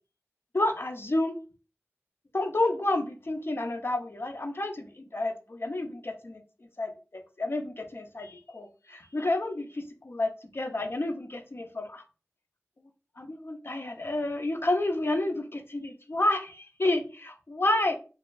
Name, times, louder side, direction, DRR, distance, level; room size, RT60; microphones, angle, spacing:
voice 1, 0.5-1.4 2.3-6.4 6.8-6.9 7.4-12.0 13.2-17.9, left 2 dB, 50° left, 5 dB, 0.6 m, -30 dB
3.0 x 2.7 x 2.5 m, 0.34 s
wide cardioid pair, 45°, 5 cm